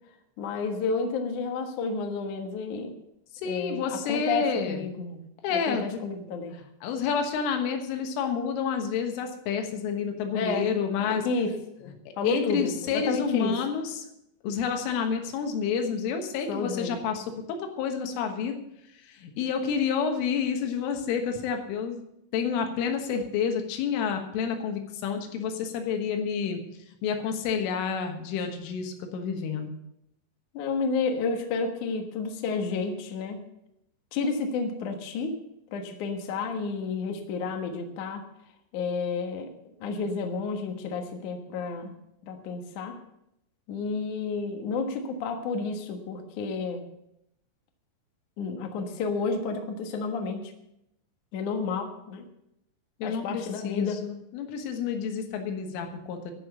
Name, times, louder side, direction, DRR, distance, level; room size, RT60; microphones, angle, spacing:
voice 1, 0.4-2.9 3.4-5.2 5.5-6.5 10.3-10.8 11.1-11.5 11.8-13.5 16.5-17.0 30.5-33.4 34.1-35.3 35.7-38.2 38.7-39.5 39.8-41.9 42.2-43.0 43.7-46.8 48.4-50.4 51.3-52.2 53.0-54.0, left 4 dB, 65° left, 4 dB, 2.0 m, -31 dB
voice 2, 3.3-4.8 5.4-6.0 6.8-11.2 12.2-14.0 14.4-18.6 19.1-22.0 22.3-26.6 27.0-29.7 53.0-56.3, left 6 dB, 85° left, 5 dB, 3.9 m, -29 dB
13.5 x 6.6 x 8.1 m, 0.81 s
omnidirectional pair, 5.6 m